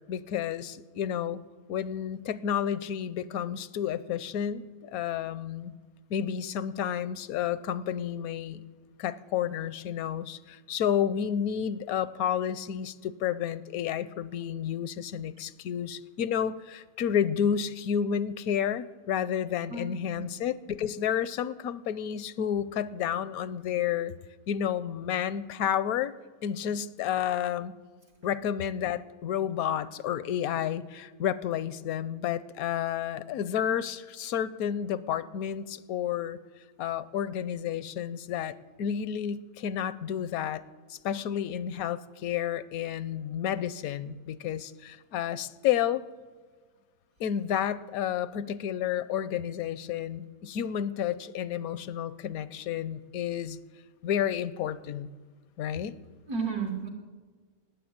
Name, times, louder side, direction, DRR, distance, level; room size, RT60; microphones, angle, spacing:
voice 1, 0.1-1.4 1.7-5.7 6.1-8.6 9.0-24.1 24.5-26.1 26.4-27.7 28.2-36.4 36.8-40.6 40.9-46.0 47.2-53.6 54.0-55.1 55.6-56.0, left 9 dB, 75° left, 16 dB, 1.1 m, -31 dB
voice 2, 19.7-20.2 56.3-56.9, right 5 dB, 80° right, 1 dB, 2.7 m, -33 dB
13.0 x 9.8 x 8.7 m, 1.5 s
omnidirectional pair, 1.6 m